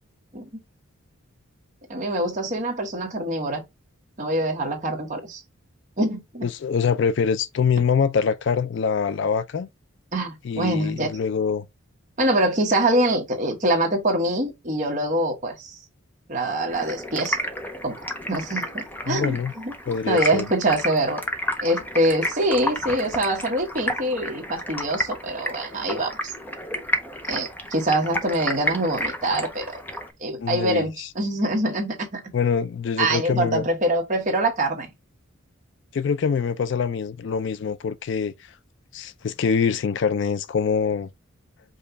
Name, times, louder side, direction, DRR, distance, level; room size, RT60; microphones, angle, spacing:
voice 1, 1.9-3.6 4.2-5.4 6.0-6.5 10.1-11.1 12.2-15.8 16.3-17.4 17.8-18.0 18.3-21.2 21.6-26.1 27.3-29.8 30.2-32.2 33.0-34.9, right 1 dB, 35° right, 1.3 m, -24 dB
voice 2, 6.4-9.7 10.4-11.7 19.1-19.5 19.9-20.4 30.4-31.1 32.3-33.7 35.9-38.3 38.9-41.1, left 6 dB, 55° left, 0.3 m, -24 dB
Stream, 16.7-30.1, equal, 10° left, 0.6 m, -31 dB
5.3 x 2.3 x 4.0 m
head